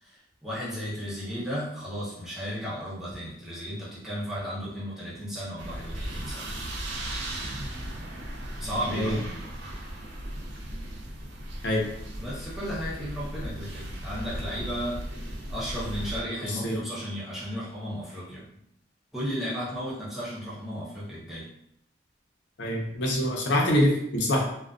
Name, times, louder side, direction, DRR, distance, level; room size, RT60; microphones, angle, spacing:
voice 1, 0.0-6.5 8.6-9.5 12.2-15.0 15.5-18.5 19.1-21.5, equal, ahead, -9 dB, 0.7 m, -34 dB
sound 1, 5.6-16.2, right 1 dB, 75° right, 0.5 m, -36 dB
voice 2, 22.6-24.4, equal, 80° left, -1 dB, 0.6 m, -24 dB
2.4 x 2.2 x 2.4 m, 0.74 s
head